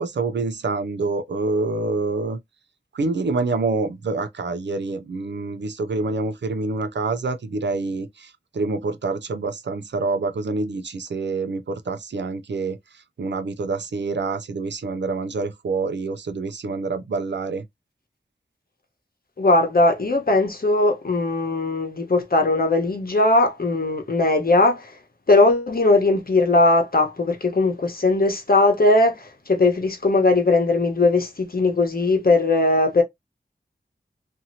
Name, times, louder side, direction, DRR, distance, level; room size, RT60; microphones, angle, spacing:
voice 1, 0.0-2.4 2.9-17.6, right 3 dB, 80° right, 0.5 m, -27 dB
voice 2, 19.4-24.9 25.3-33.0, left 2 dB, 55° left, 1.0 m, -19 dB
2.8 x 2.6 x 2.7 m
wide cardioid pair, 45°, 18 cm